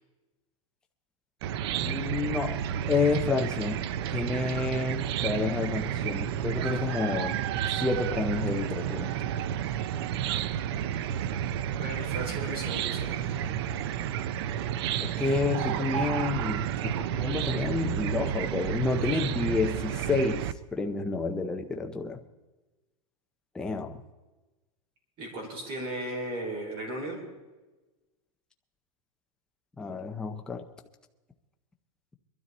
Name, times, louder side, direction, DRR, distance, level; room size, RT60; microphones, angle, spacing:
Chicken rooster / Cricket, 1.4-20.5, right 10 dB, 45° right, 0.6 m, -31 dB
voice 1, 1.8-3.8 4.1-7.4 7.8-9.1 15.0-22.2 23.5-24.0 29.8-30.7, left 4 dB, 5° left, 0.5 m, -30 dB
voice 2, 11.8-13.4 25.2-27.2, right 1 dB, 30° right, 4.9 m, -36 dB
22.0 x 12.5 x 4.1 m
supercardioid pair, 165°, 18 cm